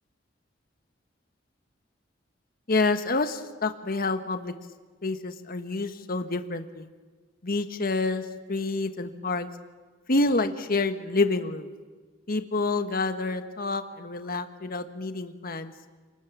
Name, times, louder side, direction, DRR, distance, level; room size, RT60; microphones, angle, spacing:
voice 1, 2.7-4.5 5.0-6.9 7.4-9.5 10.1-11.7 12.3-15.7, left 3 dB, 50° left, 8 dB, 1.4 m, -28 dB
28.5 x 20.0 x 7.3 m, 1.4 s
head